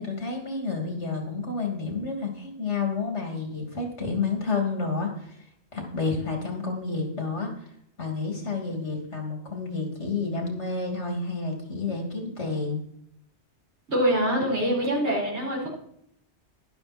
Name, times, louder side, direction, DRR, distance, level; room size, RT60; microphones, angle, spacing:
voice 1, 0.0-5.4 5.7-7.5 8.0-12.8, left 4 dB, 80° left, 2 dB, 3.2 m, -30 dB
voice 2, 13.9-15.7, equal, 75° right, -4 dB, 4.6 m, -24 dB
11.5 x 11.5 x 4.4 m, 0.71 s
omnidirectional pair, 1.2 m